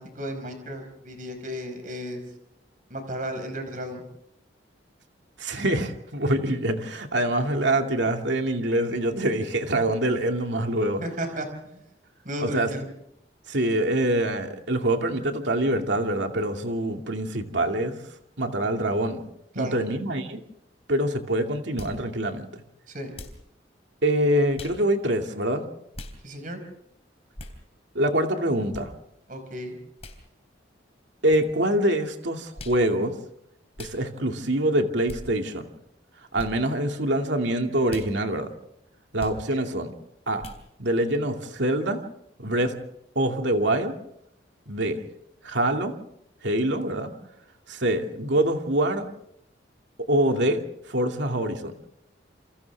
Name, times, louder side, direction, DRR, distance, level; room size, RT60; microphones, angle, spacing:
voice 1, 0.0-2.2 2.9-4.0 11.0-11.8 12.3-12.9 19.6-19.8 22.9-23.1 26.2-26.6 29.3-29.8 39.5-39.6, equal, 45° right, 5 dB, 5.2 m, -34 dB
voice 2, 5.4-11.0 12.4-12.7 13.5-18.0 18.4-19.2 19.5-20.4 20.9-22.4 24.0-25.6 27.9-28.9 31.2-33.1 33.8-35.7 36.3-38.5 39.1-39.9 40.3-40.5 40.8-42.0 42.4-42.7 43.2-43.9 44.7-45.0 45.4-45.9 46.4-47.1 47.7-49.1 50.1-50.6 50.9-51.7, right 1 dB, 70° right, 4 dB, 2.4 m, -25 dB
sound 1, 21.8-22.0 23.1-23.4 24.5-24.8 25.9-26.2 27.3-27.6 28.7-28.9 30.0-30.2 31.3-31.5 32.5-32.8 33.7-34.0 35.1-35.2 36.3-36.5 37.9-38.1 39.2-39.4 40.4-40.6, left 1 dB, 35° left, 3.3 m, -40 dB
28.5 x 28.0 x 3.6 m, 0.77 s
head